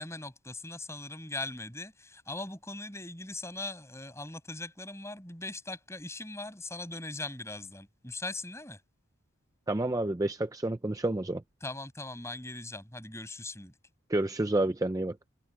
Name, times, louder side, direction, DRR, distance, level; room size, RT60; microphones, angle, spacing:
voice 1, 0.0-8.8 11.6-13.7, left 2 dB, 15° left, 6.6 m, -40 dB
voice 2, 9.7-11.4 14.1-15.2, right 1 dB, 15° right, 0.4 m, -29 dB
head